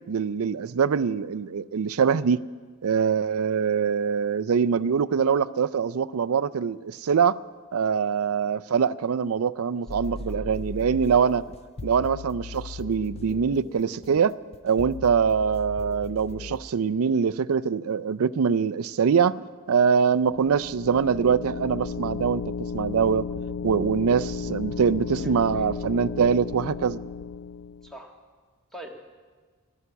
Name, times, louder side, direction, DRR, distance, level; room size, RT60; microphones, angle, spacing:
voice 1, 0.1-2.4 2.8-7.4 7.7-11.4 11.8-14.3 14.6-23.3 23.6-27.0, right 6 dB, 70° right, 15 dB, 0.4 m, -23 dB
voice 2, 9.8-10.4 25.1-25.7 27.8-28.1 28.7-29.0, right 1 dB, ahead, 1 dB, 1.5 m, -45 dB
sound 1, 9.9-16.6, left 3 dB, 25° left, 0.4 m, -38 dB
sound 2, 20.2-27.9, left 5 dB, 85° left, 0.5 m, -34 dB
16.0 x 12.5 x 7.0 m, 1.5 s
head